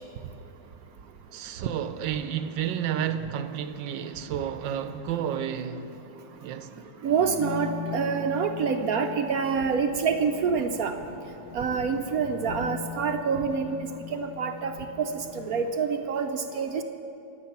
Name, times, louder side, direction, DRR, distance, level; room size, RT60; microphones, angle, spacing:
voice 1, 1.3-6.0 6.4-6.7, right 9 dB, 90° right, 1.4 m, -31 dB
voice 2, 7.0-10.9 11.5-16.8, right 6 dB, 65° right, 1.0 m, -27 dB
sound 1, 7.1-15.7, left 9 dB, 85° left, 1.3 m, -40 dB
25.0 x 8.7 x 5.8 m
omnidirectional pair, 2.0 m